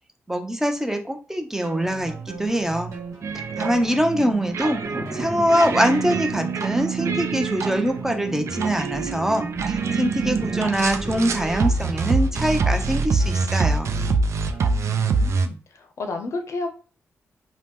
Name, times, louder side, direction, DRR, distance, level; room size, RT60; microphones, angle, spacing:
voice 1, 0.3-2.9 3.6-4.8 5.1-13.9, equal, 10° right, 5 dB, 0.6 m, -23 dB
sound 1, 1.6-15.3, right 2 dB, 90° right, 0.9 m, -38 dB
Thunder, 2.0-12.8 13.1-13.2, right 1 dB, 50° right, 1.1 m, -40 dB
sound 2, 3.2-15.5, right 4 dB, 65° right, 0.3 m, -25 dB
voice 2, 14.8-16.7, left 3 dB, 70° left, 6 dB, 0.6 m, -32 dB
2.8 x 2.0 x 3.4 m, 0.37 s
cardioid pair, 65°, 5 cm